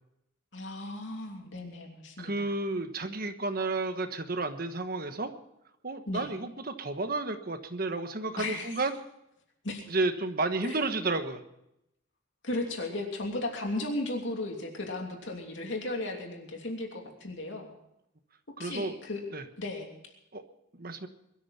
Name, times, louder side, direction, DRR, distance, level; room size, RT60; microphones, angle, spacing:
voice 1, 0.5-2.5 6.1-6.3 8.4-8.8 9.6-9.9 10.6-10.8 12.4-17.7 18.6-19.2 19.6-19.9, left 2 dB, 60° left, 1 dB, 3.0 m, -35 dB
voice 2, 2.2-5.3 5.8-8.9 9.9-11.4 18.6-18.9 19.3-19.4 20.3-20.4 20.8-21.1, right 2 dB, 45° right, 8 dB, 1.3 m, -31 dB
22.5 x 13.0 x 4.3 m, 0.82 s
head